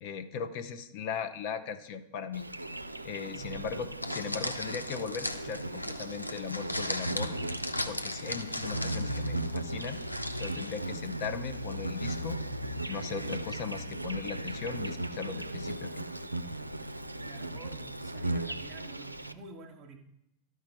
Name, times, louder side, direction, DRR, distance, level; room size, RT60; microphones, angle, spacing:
voice 1, 0.0-2.5 3.0-7.3 7.9-10.0 10.4-12.4 12.8-16.1, left 6 dB, 45° left, 8 dB, 0.6 m, -38 dB
Insect, 2.3-19.3, right 1 dB, 85° right, 0.4 m, -37 dB
voice 2, 3.3-3.7 17.1-20.0, right 4 dB, 30° right, 1 dB, 1.0 m, -49 dB
sound 1, 3.4-14.8, left 1 dB, 85° left, 0.5 m, -40 dB
12.5 x 4.8 x 4.4 m, 0.84 s
figure-of-eight pair, 90°, 0 cm